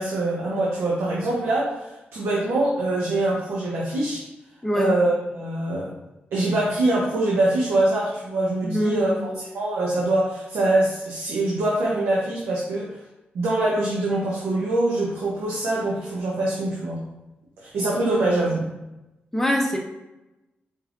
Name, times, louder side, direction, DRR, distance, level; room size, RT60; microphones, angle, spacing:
voice 1, 0.0-4.2 4.7-5.9 6.3-9.1 9.5-13.0 13.3-17.0 17.6-18.6, right 2 dB, 85° right, -4 dB, 0.8 m, -24 dB
voice 2, 4.6-4.9 8.6-9.4 18.2-18.4 19.3-19.8, equal, 5° left, 0 dB, 0.8 m, -24 dB
4.4 x 3.4 x 2.5 m, 0.98 s
cardioid pair, 75°, 4 cm